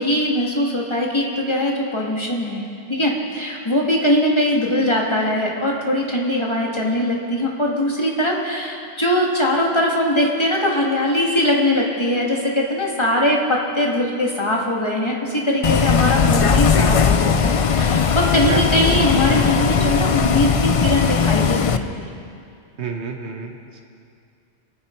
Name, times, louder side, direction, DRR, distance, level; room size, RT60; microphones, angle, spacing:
voice 1, 0.0-2.6 2.9-21.8 22.1-22.2, left 1 dB, 25° left, -2 dB, 2.2 m, -21 dB
Bus, 15.6-21.8, left 6 dB, 45° left, 0.5 m, -18 dB
voice 2, 18.5-18.9 22.8-23.8, right 5 dB, 85° right, 3 dB, 1.5 m, -29 dB
24.5 x 9.6 x 4.6 m, 2.4 s
omnidirectional pair, 1.1 m